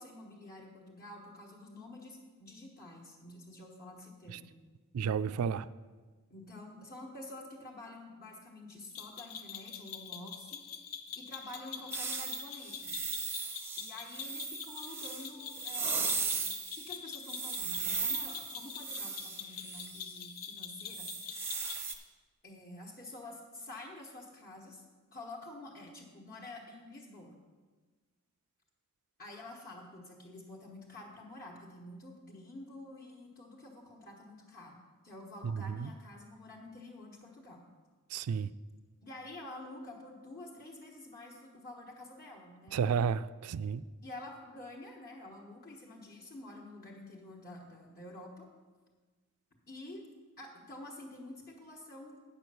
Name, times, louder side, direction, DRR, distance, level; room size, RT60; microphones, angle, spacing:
voice 1, 0.0-4.5 6.3-10.6 11.2-12.9 13.8-16.4 16.7-21.1 22.4-24.8 25.1-27.4 29.2-37.6 39.0-42.8 44.0-48.5 49.7-50.1 50.4-52.3, left 2 dB, 45° left, -2 dB, 1.3 m, -49 dB
voice 2, 4.9-5.7 35.4-35.9 38.1-38.5 42.7-43.8, right 6 dB, 70° right, 15 dB, 0.3 m, -32 dB
sound 1, 9.0-22.0, left 8 dB, 85° left, 0.8 m, -45 dB
sound 2, 11.9-16.9 17.2-20.1 20.9-21.9, right 4 dB, 10° right, 0.6 m, -37 dB
8.6 x 6.2 x 6.8 m, 1.4 s
head